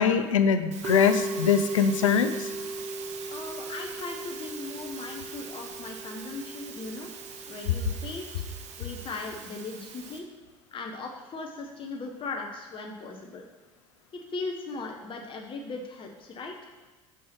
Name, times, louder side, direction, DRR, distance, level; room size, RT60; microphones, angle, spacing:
voice 1, 0.0-2.5, left 7 dB, 80° left, 9 dB, 0.5 m, -23 dB
Musical instrument, 0.7-10.2, right 3 dB, 45° right, 1.0 m, -37 dB
voice 2, 3.3-7.1 7.5-8.3 8.8-10.3 10.7-13.4 14.1-16.7, left 3 dB, 30° left, 2 dB, 0.9 m, -38 dB
5.6 x 4.6 x 5.9 m, 1.3 s
figure-of-eight pair, 65°, 16 cm